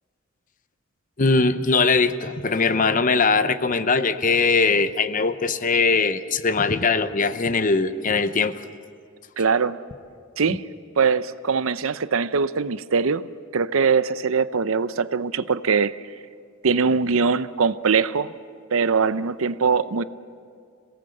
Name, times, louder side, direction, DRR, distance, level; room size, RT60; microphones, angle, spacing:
voice 1, 1.2-8.6, left 4 dB, 40° left, 0.8 m, -21 dB
voice 2, 9.4-9.8 10.4-10.7 11.0-13.3 13.5-15.9 16.6-18.3 18.7-20.0, right 5 dB, 75° right, 0.6 m, -22 dB
27.0 x 18.0 x 7.8 m
head